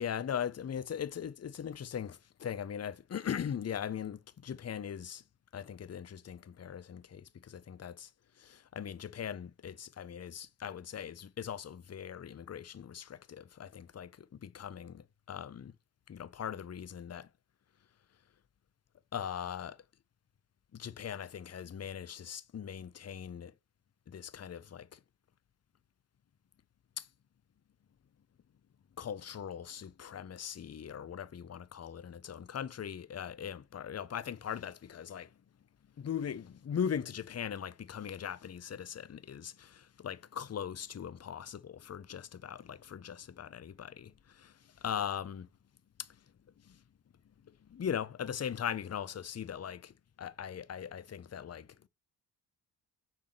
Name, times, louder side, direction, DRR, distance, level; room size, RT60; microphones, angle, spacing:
voice 1, 0.0-5.2 5.5-8.1 8.4-15.7 16.1-17.3 19.1-19.8 20.7-23.5 24.1-25.0 27.0-27.1 29.0-35.3 36.0-44.5 44.8-45.5 46.7-46.8 47.7-51.7, left 8 dB, 35° left, 0.6 m, -40 dB
6.6 x 3.7 x 5.9 m
cardioid pair, 65°, 45 cm